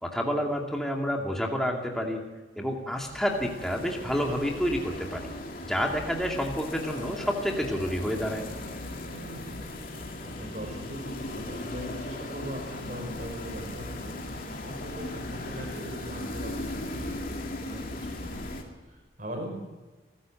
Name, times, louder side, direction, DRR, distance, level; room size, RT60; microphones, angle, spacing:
voice 1, 0.0-2.2 2.6-5.3 5.6-8.4, equal, ahead, 0 dB, 2.4 m, -29 dB
sound 1, 2.9-18.6, left 1 dB, 50° left, 2.7 m, -38 dB
voice 2, 9.1-9.6 10.2-14.2 14.6-19.6, equal, 45° right, 2 dB, 5.5 m, -40 dB
24.5 x 14.0 x 7.8 m, 1.2 s
head